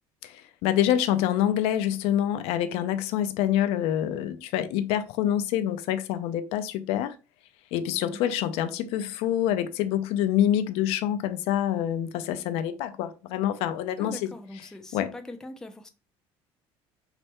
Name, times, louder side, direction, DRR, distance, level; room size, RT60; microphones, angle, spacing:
voice 1, 0.2-7.2 7.7-14.3 14.9-15.1, left 11 dB, 75° left, 0.4 m, -26 dB
voice 2, 14.0-15.9, left 2 dB, 5° left, 0.3 m, -42 dB
3.2 x 2.1 x 2.9 m
cardioid pair, 140°, 10 cm